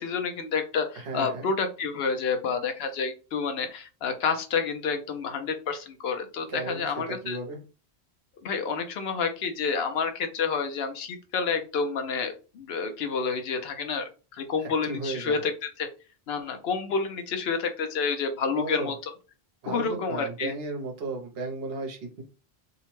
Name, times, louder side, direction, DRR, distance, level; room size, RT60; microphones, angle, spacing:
voice 1, 0.0-7.4 8.4-15.5 15.8-15.9 16.3-18.9 19.7-20.5, left 5 dB, 75° left, 7 dB, 0.8 m, -29 dB
voice 2, 1.0-1.5 6.5-7.6 14.6-15.4 18.5-18.9 19.6-22.2, right 3 dB, 70° right, 3 dB, 0.9 m, -35 dB
2.8 x 2.1 x 2.9 m, 0.34 s
omnidirectional pair, 1.1 m